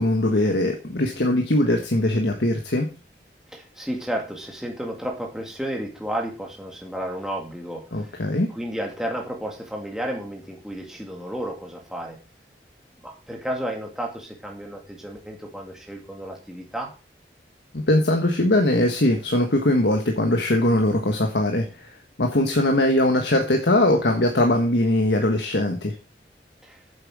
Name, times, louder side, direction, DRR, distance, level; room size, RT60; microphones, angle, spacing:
voice 1, 0.0-2.9 7.9-8.5 17.7-21.9 22.2-25.9, left 1 dB, 80° left, 3 dB, 1.4 m, -21 dB
voice 2, 3.5-12.2 13.0-16.9 26.6-26.8, right 1 dB, 5° right, 0 dB, 2.2 m, -32 dB
9.0 x 7.8 x 4.8 m, 0.33 s
head